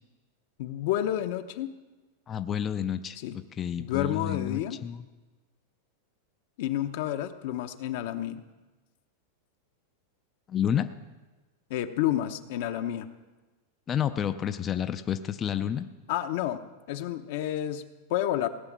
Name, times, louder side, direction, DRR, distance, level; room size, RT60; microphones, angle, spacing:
voice 1, 0.6-1.7 3.2-3.4 3.8-4.8 6.6-8.4 11.7-13.1 16.1-16.6 16.9-18.5, left 12 dB, 55° left, 9 dB, 0.8 m, -30 dB
voice 2, 2.3-5.1 10.5-10.9 13.9-15.9, left 9 dB, 20° left, 10 dB, 0.4 m, -30 dB
17.5 x 9.1 x 7.4 m, 1.2 s
supercardioid pair, 170°, 0 cm